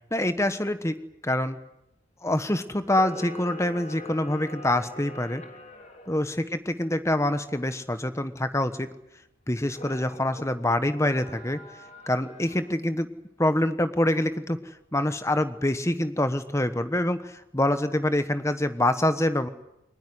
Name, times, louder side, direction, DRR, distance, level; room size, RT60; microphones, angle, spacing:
voice 1, 0.1-0.9 1.2-1.6 2.2-5.4 6.1-8.9 9.5-11.6 12.1-13.1 13.4-14.6 14.9-19.5, left 1 dB, 15° left, 10 dB, 1.2 m, -25 dB
Camera, 2.8-6.1 9.7-10.4 10.9-12.8, left 1 dB, 35° left, 3.2 m, -43 dB
22.5 x 20.0 x 9.6 m, 0.85 s
head